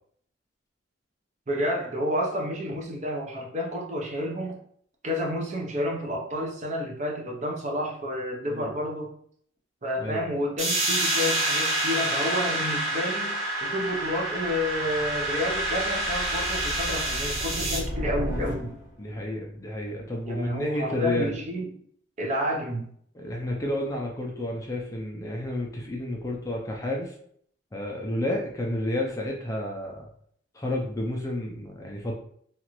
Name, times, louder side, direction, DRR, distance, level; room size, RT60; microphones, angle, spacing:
voice 1, 1.5-4.5 5.0-9.1 9.8-13.3 13.6-18.7 20.3-21.7 22.2-22.9, equal, 35° right, -1 dB, 0.6 m, -30 dB
sound 1, 10.6-17.8, right 1 dB, 80° right, 1.1 m, -28 dB
sound 2, 13.9-19.1, equal, 10° right, 0.9 m, -36 dB
voice 2, 19.0-21.3 23.1-27.1 27.7-30.1 30.5-32.1, left 1 dB, 15° left, -1 dB, 0.4 m, -31 dB
2.9 x 2.5 x 2.9 m, 0.63 s
head